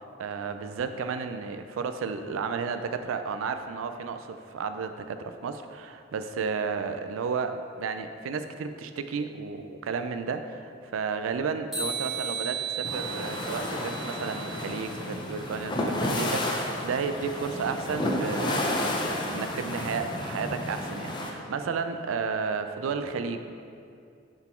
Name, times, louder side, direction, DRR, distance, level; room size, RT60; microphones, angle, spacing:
voice 1, 0.2-23.5, right 5 dB, 85° right, 9 dB, 0.4 m, -32 dB
sound 1, 11.7-14.8, right 6 dB, ahead, 1.2 m, -35 dB
sound 2, 12.8-21.3, left 1 dB, 25° left, 0.5 m, -31 dB
5.7 x 4.0 x 4.3 m, 2.4 s
head